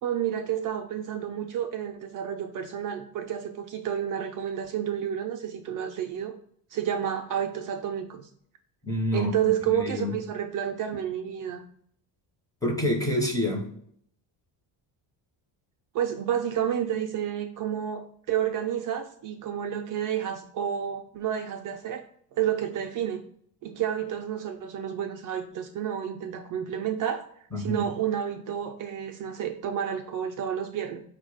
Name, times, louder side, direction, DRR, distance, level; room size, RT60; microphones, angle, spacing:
voice 1, 0.0-6.3 6.7-8.3 9.1-11.6 15.9-22.0 22.4-23.2 23.6-27.3 27.6-31.0, right 9 dB, 50° right, 4 dB, 0.4 m, -30 dB
voice 2, 8.8-9.3 9.7-10.1 12.6-13.7 27.5-27.9, left 1 dB, 10° left, 2 dB, 0.7 m, -27 dB
4.6 x 2.1 x 4.6 m, 0.65 s
cardioid pair, 120°, 43 cm